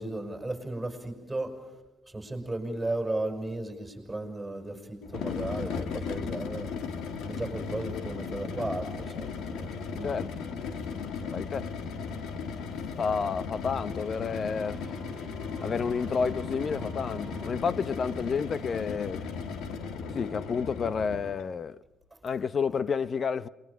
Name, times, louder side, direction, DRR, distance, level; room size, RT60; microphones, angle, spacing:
voice 1, 0.0-1.6 2.1-6.7 7.2-10.2 11.1-11.3, right 2 dB, 10° right, 7.0 m, -35 dB
sound 1, 5.0-21.5, left 5 dB, 85° left, 2.2 m, -36 dB
voice 2, 11.3-11.7 13.0-14.9 15.6-19.3 20.1-21.8 22.2-23.5, left 5 dB, 45° left, 0.8 m, -30 dB
sound 2, 14.2-18.6, right 3 dB, 30° right, 2.3 m, -49 dB
28.0 x 22.5 x 7.3 m
cardioid pair, 90°, 0 cm